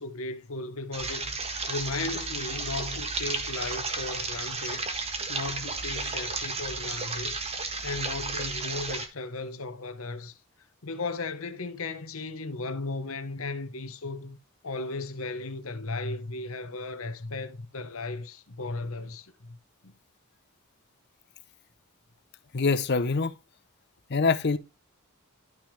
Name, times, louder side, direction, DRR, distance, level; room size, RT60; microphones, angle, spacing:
voice 1, 0.0-1.4 1.7-4.9 5.3-7.4 7.8-10.4 10.8-14.4 14.6-19.6 19.8-20.0, left 3 dB, 70° left, 1.1 m, -36 dB
sound 1, 0.9-9.1, right 3 dB, 30° right, 1.5 m, -33 dB
voice 2, 22.5-23.3 24.1-24.6, left 4 dB, 50° left, 0.7 m, -24 dB
12.0 x 6.2 x 3.2 m
head